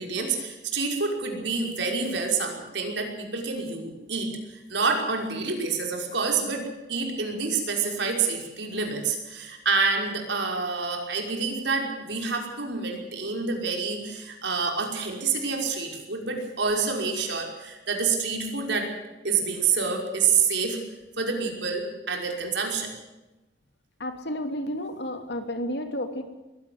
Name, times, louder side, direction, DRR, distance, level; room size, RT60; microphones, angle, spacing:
voice 1, 0.0-18.9 19.2-20.8 21.2-22.9, right 4 dB, 75° right, 2 dB, 5.6 m, -27 dB
voice 2, 24.0-26.2, left 1 dB, 65° left, 6 dB, 3.0 m, -31 dB
22.0 x 16.5 x 8.0 m, 1.0 s
head